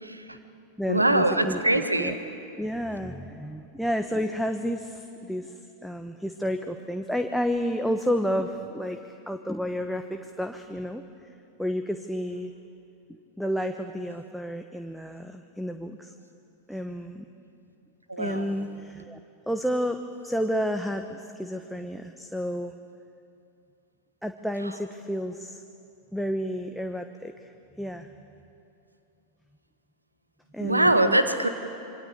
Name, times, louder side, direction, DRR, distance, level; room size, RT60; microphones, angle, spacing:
voice 1, 0.0-0.4 0.9-2.2 18.1-18.5 30.6-31.5, right 1 dB, 90° right, 8 dB, 1.6 m, -23 dB
voice 2, 0.8-2.2 2.6-11.0 11.6-12.5 13.1-16.1 16.7-17.3 18.2-19.2 19.5-22.7 24.2-25.6 26.1-28.1 30.5-31.2, equal, ahead, 5 dB, 1.2 m, -31 dB
26.5 x 24.0 x 8.5 m, 2.7 s
figure-of-eight pair, 90°, 0 cm